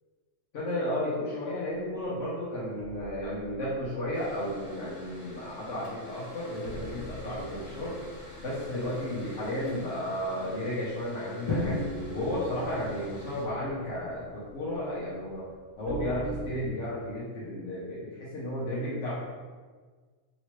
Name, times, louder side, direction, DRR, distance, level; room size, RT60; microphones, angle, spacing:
voice 1, 0.5-8.0 8.4-11.8 12.1-15.5 15.8-19.2, left 1 dB, 70° left, -7 dB, 1.1 m, -33 dB
sound 1, 2.8-4.7 5.1-5.3 5.7-5.8 6.6-10.5 10.8-10.9 11.5-16.7, right 1 dB, 80° right, 1.0 m, -43 dB
Mechanical fan, 4.1-13.4, equal, 25° left, 1.5 m, -49 dB
Drum, 11.5-13.6, left 1 dB, 40° left, 0.4 m, -34 dB
2.9 x 2.8 x 3.0 m, 1.5 s
omnidirectional pair, 1.3 m